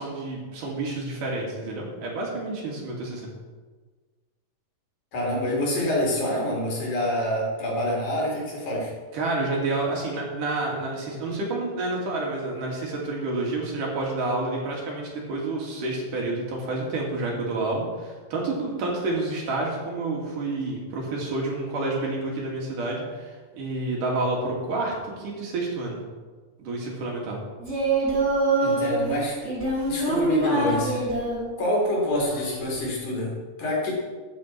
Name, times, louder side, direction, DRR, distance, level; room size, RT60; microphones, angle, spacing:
voice 1, 0.0-3.3 9.1-26.0 26.6-27.4, right 2 dB, 85° right, -2 dB, 4.2 m, -29 dB
voice 2, 5.1-8.9 28.6-29.4 29.8-31.0 31.6-33.9, left 1 dB, 70° left, -2 dB, 4.9 m, -26 dB
Singing, 27.6-29.0 29.4-31.4 32.2-32.8, right 2 dB, 20° right, 5.1 m, -24 dB
13.5 x 9.9 x 4.6 m, 1.4 s
omnidirectional pair, 3.6 m